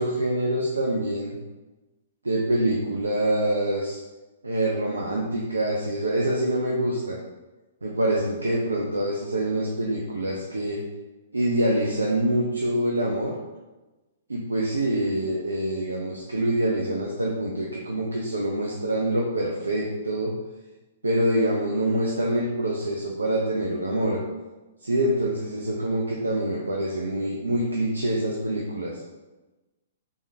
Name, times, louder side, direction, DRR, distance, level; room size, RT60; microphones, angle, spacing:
voice 1, 0.0-1.4 2.2-4.0 4.4-7.2 7.8-10.8 11.3-13.3 14.3-20.3 21.0-24.2 24.8-29.0, right 1 dB, 80° right, -2 dB, 0.5 m, -25 dB
3.4 x 3.2 x 2.7 m, 1.1 s
figure-of-eight pair, 115°, 0 cm